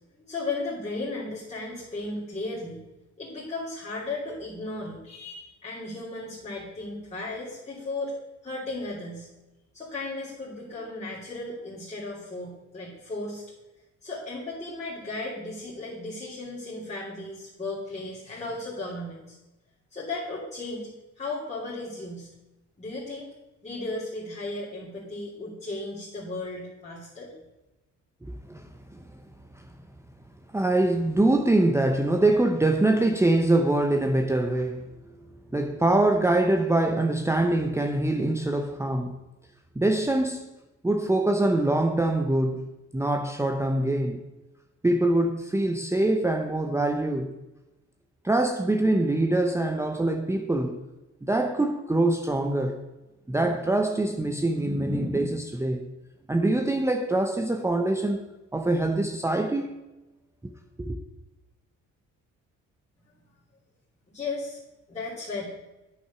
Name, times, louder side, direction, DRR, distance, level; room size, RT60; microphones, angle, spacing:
voice 1, 0.2-2.8 3.2-8.1 8.4-9.3 9.7-13.4 14.0-19.4 19.9-20.9 21.2-22.3 22.8-23.3 23.6-27.3 64.1-64.6 64.9-65.4, left 2 dB, 20° left, 2.8 m, -35 dB
voice 2, 28.2-29.0 29.5-29.6 30.5-35.3 35.5-39.2 39.8-40.4 40.8-42.7 42.9-44.2 44.8-47.3 48.2-50.8 51.2-52.8 53.3-55.8 56.3-58.2 58.5-59.7 60.8-61.0, right 2 dB, 10° right, 0.8 m, -24 dB
8.7 x 6.6 x 6.0 m
cardioid pair, 90°, 30 cm